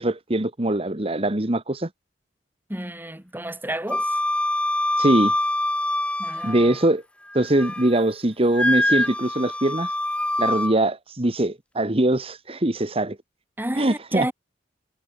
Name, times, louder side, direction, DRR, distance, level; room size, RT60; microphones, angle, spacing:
voice 1, 0.0-1.9 5.0-5.3 6.4-7.0 7.3-9.9 10.4-13.2 13.7-14.3, right 1 dB, 35° right, 1.6 m, -22 dB
voice 2, 2.7-4.2 6.2-6.7 13.6-14.3, right 1 dB, 10° right, 7.8 m, -31 dB
Wind instrument woodwind instrument, 3.9-6.9 7.3-8.0 8.5-10.7, left 1 dB, 5° left, 2.8 m, -25 dB
head